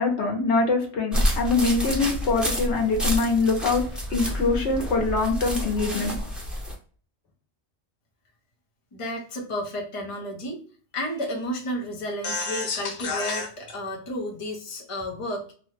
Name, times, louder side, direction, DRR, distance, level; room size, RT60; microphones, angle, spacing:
voice 1, 0.0-3.8 4.1-6.1, left 3 dB, 80° left, 2 dB, 1.3 m, -23 dB
sound 1, 1.1-6.7, equal, ahead, 0.7 m, -28 dB
voice 2, 8.9-10.6 10.9-15.4, left 1 dB, 30° left, -1 dB, 0.8 m, -31 dB
2.7 x 2.3 x 3.1 m, 0.43 s
omnidirectional pair, 1.1 m